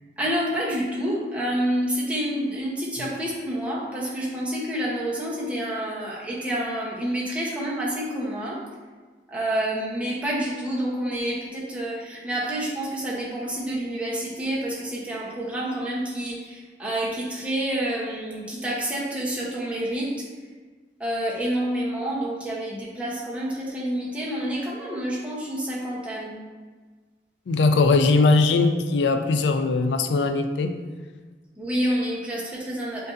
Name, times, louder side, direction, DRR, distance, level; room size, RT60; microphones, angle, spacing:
voice 1, 0.2-8.6 9.3-20.3 21.0-26.4 31.6-33.1, right 1 dB, 5° right, -5 dB, 0.8 m, -28 dB
voice 2, 27.5-30.7, left 3 dB, 85° left, 7 dB, 0.4 m, -20 dB
7.6 x 2.6 x 2.5 m, 1.4 s
head